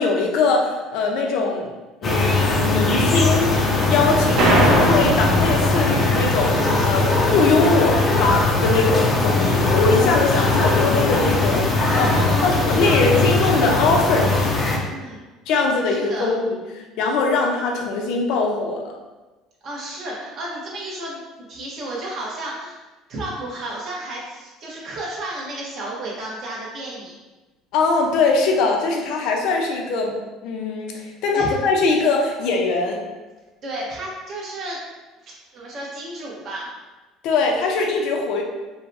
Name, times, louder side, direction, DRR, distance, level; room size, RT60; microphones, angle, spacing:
voice 1, 0.0-1.7 2.0-3.5 3.9-6.5 6.8-11.6 11.9-12.1 12.4-14.3 15.5-18.9 27.7-30.2 30.4-33.0 37.2-38.4, left 3 dB, 65° left, 1 dB, 0.6 m, -21 dB
sound 1, 2.0-14.8, left 2 dB, 25° left, 0.6 m, -20 dB
sound 2, 4.4-6.8, right 1 dB, 60° right, 0.8 m, -21 dB
voice 2, 11.8-13.3 13.5-13.7 14.6-15.2 15.9-16.3 19.6-22.8 23.1-27.2 31.3-31.6 33.6-34.8 35.2-36.7, right 1 dB, 40° right, -5 dB, 1.1 m, -32 dB
4.7 x 2.2 x 2.6 m, 1.2 s
cardioid pair, 145°, 0 cm